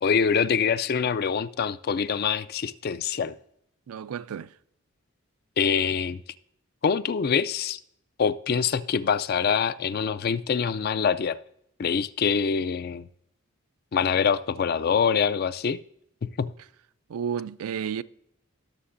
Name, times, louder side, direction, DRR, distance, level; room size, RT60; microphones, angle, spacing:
voice 1, 0.0-3.4 5.6-6.2 6.8-7.8 8.2-11.4 11.8-13.1 13.9-15.8 16.2-16.5, left 6 dB, 45° left, 0.3 m, -25 dB
voice 2, 3.9-4.5 17.1-18.0, right 7 dB, 85° right, 0.4 m, -31 dB
18.0 x 6.7 x 2.6 m
head